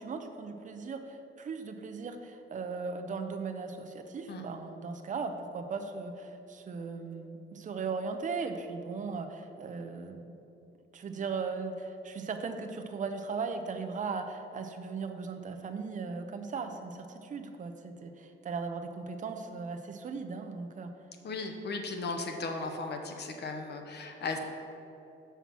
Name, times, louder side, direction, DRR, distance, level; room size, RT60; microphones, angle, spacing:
voice 1, 0.0-10.3 10.9-20.9, right 4 dB, 40° right, 5 dB, 0.6 m, -38 dB
voice 2, 21.2-24.4, left 3 dB, 55° left, 4 dB, 0.9 m, -36 dB
7.1 x 5.7 x 6.0 m, 2.9 s
cardioid pair, 145°, 21 cm